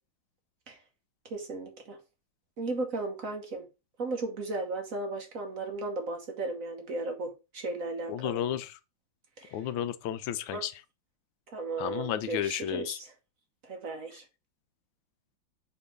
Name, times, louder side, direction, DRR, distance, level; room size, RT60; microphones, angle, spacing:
voice 1, 1.2-2.0 2.6-3.7 4.0-8.4 9.4-9.7 10.5-10.6 11.5-13.1 13.6-14.2, right 3 dB, 50° right, 1.4 m, -35 dB
voice 2, 8.1-8.8 9.5-10.7 11.8-13.0, left 10 dB, 80° left, 1.3 m, -32 dB
4.8 x 4.5 x 5.2 m
omnidirectional pair, 2.1 m